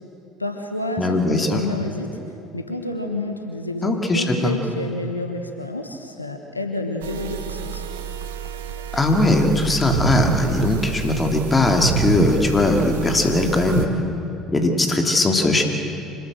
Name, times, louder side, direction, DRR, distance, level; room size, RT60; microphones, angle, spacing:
voice 1, 0.4-2.2 2.5-7.8, left 2 dB, 90° left, 5 dB, 1.2 m, -29 dB
voice 2, 1.0-1.6 3.8-4.6 8.9-13.9 14.5-15.6, left 2 dB, 20° left, 3 dB, 2.9 m, -19 dB
sound 1, 7.0-13.9, right 7 dB, 70° right, 1.2 m, -27 dB
25.5 x 19.5 x 7.8 m, 2.8 s
figure-of-eight pair, 60°, 0 cm